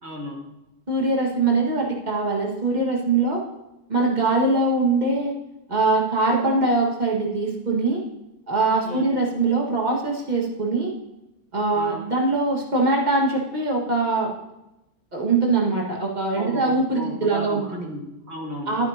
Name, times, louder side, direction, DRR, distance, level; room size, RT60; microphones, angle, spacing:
voice 1, 0.0-0.4 8.8-9.1 11.7-12.1 16.3-18.8, equal, 45° right, -1 dB, 2.1 m, -34 dB
voice 2, 0.9-3.4 3.9-5.3 5.7-8.0 8.5-10.9 11.5-14.3 15.1-17.8 18.7-18.9, right 3 dB, 30° right, -1 dB, 1.8 m, -22 dB
12.0 x 9.3 x 2.8 m, 0.94 s
omnidirectional pair, 1.7 m